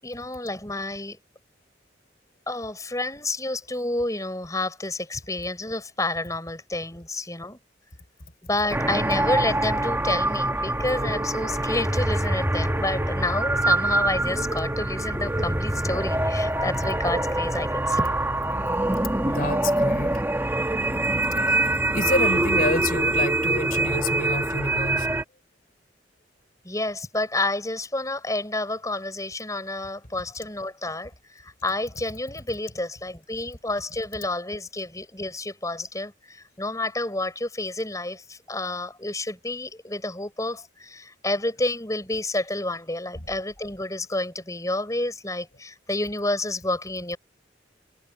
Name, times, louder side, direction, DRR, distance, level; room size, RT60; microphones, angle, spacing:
voice 1, 0.0-1.2 2.5-7.6 8.4-18.2 26.6-31.1 31.4-47.2, left 2 dB, 20° left, 6.3 m, -29 dB
sound 1, 8.7-25.2, right 2 dB, 10° right, 1.7 m, -24 dB
voice 2, 19.2-20.2 21.3-25.1 43.1-43.2, left 2 dB, 50° left, 4.2 m, -29 dB
head